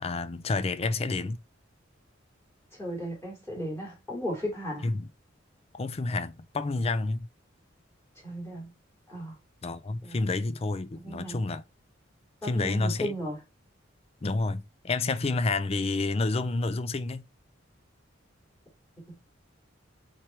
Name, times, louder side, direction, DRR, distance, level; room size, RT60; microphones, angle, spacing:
voice 1, 0.0-1.4 4.8-5.1 5.7-7.3 9.6-11.6 12.4-13.1 14.2-17.2, left 3 dB, 30° left, 0.5 m, -29 dB
voice 2, 2.7-4.9 8.2-8.7 9.1-9.4 10.0-10.2 10.9-11.4 12.4-13.4 19.0-19.2, equal, 15° left, 3.0 m, -35 dB
4.8 x 4.4 x 4.5 m
head